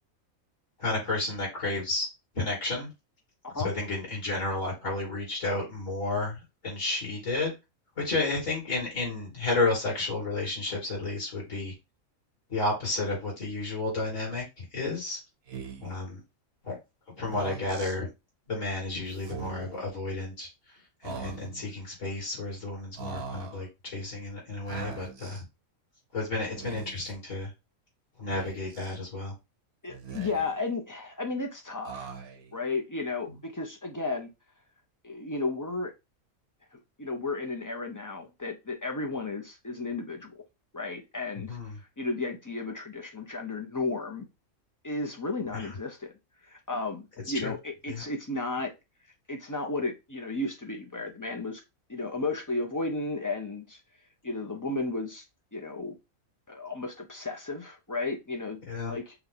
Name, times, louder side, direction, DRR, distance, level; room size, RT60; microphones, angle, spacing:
voice 1, 0.8-2.1 2.3-2.9 3.6-7.5 8.0-11.7 12.5-15.2 15.8-16.2 16.6-16.8 17.2-18.1 18.5-20.5 21.0-25.4 26.1-27.5 28.2-29.3 41.5-41.8 45.5-45.7 47.4-47.5 47.9-48.0 58.7-58.9, left 2 dB, 65° left, -3 dB, 3.2 m, -31 dB
Speech, 15.5-16.0 17.2-18.0 19.2-19.8 21.0-21.7 23.0-23.6 24.7-25.4 26.5-27.1 28.3-29.0 29.9-30.7 31.8-32.5, right 6 dB, 55° right, 0.9 m, -41 dB
voice 2, 29.8-32.1 32.5-34.3 35.0-35.9 36.7-40.4 40.7-41.6 42.0-44.3 44.8-46.1 46.4-48.7 49.3-51.6 51.9-53.8 54.2-55.2 55.5-56.0 56.5-58.6 58.9-59.1, left 3 dB, 30° left, 2 dB, 0.3 m, -33 dB
5.8 x 2.3 x 3.6 m, 0.24 s
omnidirectional pair, 1.4 m